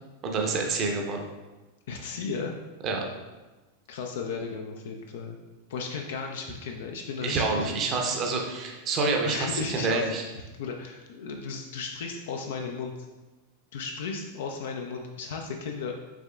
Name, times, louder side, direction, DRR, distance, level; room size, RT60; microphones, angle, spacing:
voice 1, 0.2-1.2 2.8-3.0 7.2-10.2, right 3 dB, 35° right, 1 dB, 0.7 m, -27 dB
voice 2, 1.9-2.5 3.9-5.4 5.7-7.9 9.2-10.0 10.6-12.9 13.7-16.0, left 5 dB, 55° left, 3 dB, 0.4 m, -35 dB
5.8 x 3.6 x 2.3 m, 1.2 s
figure-of-eight pair, 90°, 0 cm